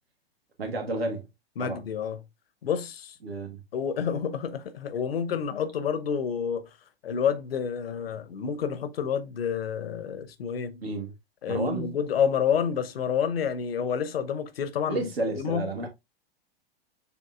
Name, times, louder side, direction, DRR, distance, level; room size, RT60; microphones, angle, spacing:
voice 1, 0.6-1.2 1.6-1.8 3.2-3.6 10.8-11.1 11.5-11.9 14.9-15.9, right 2 dB, 75° right, 1.4 m, -31 dB
voice 2, 1.6-2.2 2.6-3.1 3.7-6.7 7.0-10.8 11.4-15.1 15.4-15.7, left 7 dB, 75° left, 0.8 m, -29 dB
6.7 x 2.6 x 2.4 m
figure-of-eight pair, 100°, 30 cm